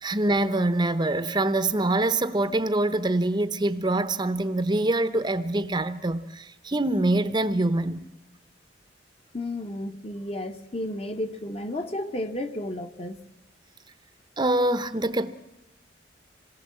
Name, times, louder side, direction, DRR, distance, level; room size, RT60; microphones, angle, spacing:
voice 1, 0.0-8.0 14.4-15.3, right 2 dB, 25° right, 0.9 m, -25 dB
voice 2, 9.3-13.2, left 1 dB, 35° left, 1.2 m, -32 dB
26.5 x 19.5 x 7.6 m
head